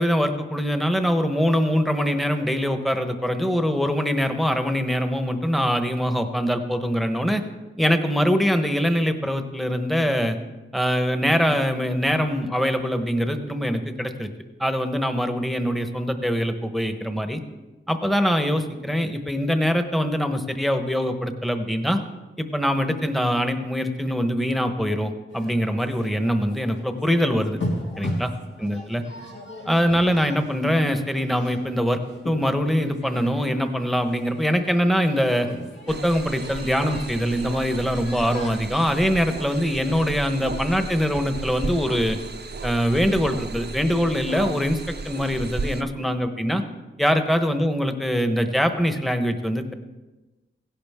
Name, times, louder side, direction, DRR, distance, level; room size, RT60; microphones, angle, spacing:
voice 1, 0.0-7.4 7.8-10.4 10.7-14.3 14.6-17.4 17.9-22.0 22.4-27.6 28.0-28.3 28.6-29.0 29.7-35.5 35.9-42.2 42.6-44.8 45.0-46.6 47.0-49.7, equal, ahead, 7 dB, 1.1 m, -23 dB
sound 1, 25.3-44.3, left 1 dB, 65° left, 2.5 m, -39 dB
sound 2, 35.9-45.8, right 3 dB, 55° right, 0.7 m, -34 dB
16.5 x 11.0 x 3.6 m, 1.1 s
wide cardioid pair, 85°, 21 cm